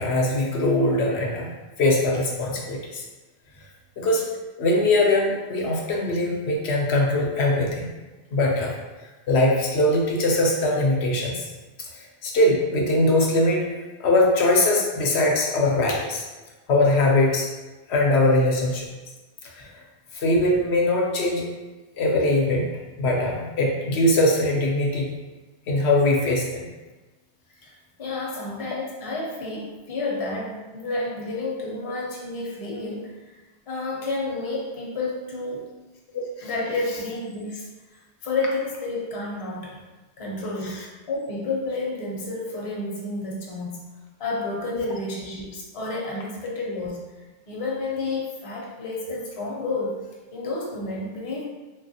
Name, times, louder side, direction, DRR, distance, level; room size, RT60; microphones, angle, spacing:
voice 1, 0.0-1.5 1.8-3.0 4.0-4.2 4.6-7.9 8.3-8.7 9.3-11.5 12.2-13.7 14.0-16.2 16.7-17.5 17.9-18.9 19.6-19.7 20.1-21.5 22.0-22.7 23.0-25.1 25.7-26.7 36.1-36.5, left 1 dB, 80° left, -2 dB, 0.9 m, -21 dB
voice 2, 27.5-33.4 33.7-35.7 36.4-39.8 40.2-43.8 44.2-47.0 47.5-51.4, left 2 dB, 40° left, -4 dB, 0.6 m, -30 dB
3.1 x 2.3 x 2.6 m, 1.2 s
omnidirectional pair, 1.1 m